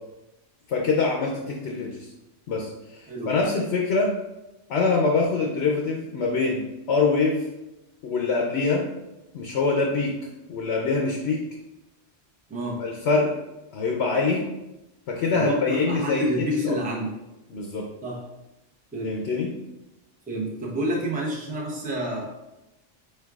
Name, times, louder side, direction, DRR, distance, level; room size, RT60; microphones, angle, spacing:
voice 1, 0.7-2.1 2.5-2.7 3.0-4.1 4.7-7.4 8.0-8.8 9.3-10.1 10.5-11.4 12.8-13.3 13.7-14.4 15.1-16.7 17.5-17.9 19.0-19.5, left 4 dB, 65° left, 0 dB, 0.9 m, -24 dB
voice 2, 3.1-3.4 12.5-12.8 15.3-17.1 18.0-18.2 18.9-19.2 20.3-22.3, equal, 10° right, -4 dB, 0.7 m, -29 dB
4.6 x 4.5 x 2.4 m, 0.96 s
omnidirectional pair, 1.3 m